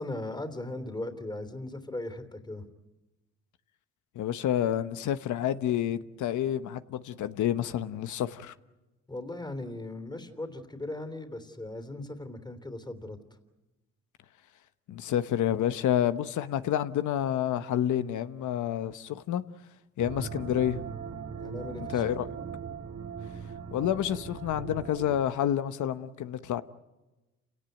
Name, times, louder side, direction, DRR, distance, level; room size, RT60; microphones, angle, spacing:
voice 1, 0.0-2.7 9.1-13.2 21.4-22.0, left 2 dB, 15° left, 3.2 m, -38 dB
voice 2, 4.1-8.5 14.9-19.4 20.0-20.8 21.8-22.3 23.7-26.6, left 11 dB, 75° left, 1.1 m, -29 dB
sound 1, 20.0-25.2, right 6 dB, 55° right, 1.8 m, -39 dB
29.0 x 17.5 x 9.3 m
cardioid pair, 90°, 30 cm